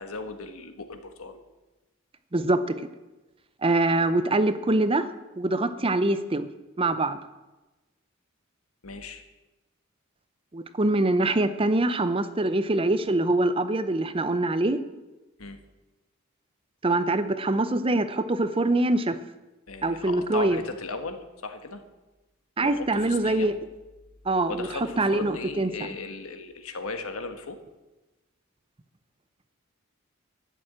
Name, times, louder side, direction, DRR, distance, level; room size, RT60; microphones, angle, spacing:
voice 1, 0.0-1.4 8.8-9.2 15.4-15.6 19.7-21.8 22.6-23.5 24.5-27.6, left 3 dB, 85° left, 7 dB, 1.4 m, -36 dB
voice 2, 3.6-5.0 5.4-6.5 6.8-7.2 10.5-14.8 16.8-19.1 19.8-20.6 22.6-23.5 24.3-24.7 25.0-25.7, right 2 dB, 25° right, 12 dB, 0.6 m, -24 dB
12.0 x 7.0 x 8.7 m, 1.1 s
head